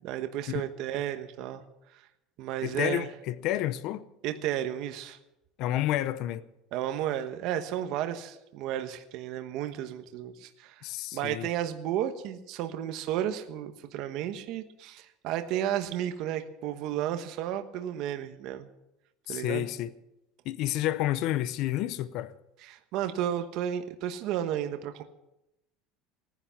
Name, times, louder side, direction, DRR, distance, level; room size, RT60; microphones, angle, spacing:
voice 1, 0.0-1.6 2.4-3.1 4.2-5.2 6.7-10.9 11.1-18.7 19.3-19.7 22.7-25.0, right 11 dB, 50° right, 1.1 m, -33 dB
voice 2, 2.6-4.0 5.6-6.4 10.8-11.5 19.3-19.9 20.5-22.3, left 13 dB, 50° left, 0.6 m, -30 dB
18.5 x 10.0 x 7.2 m
cardioid pair, 175°, 0 cm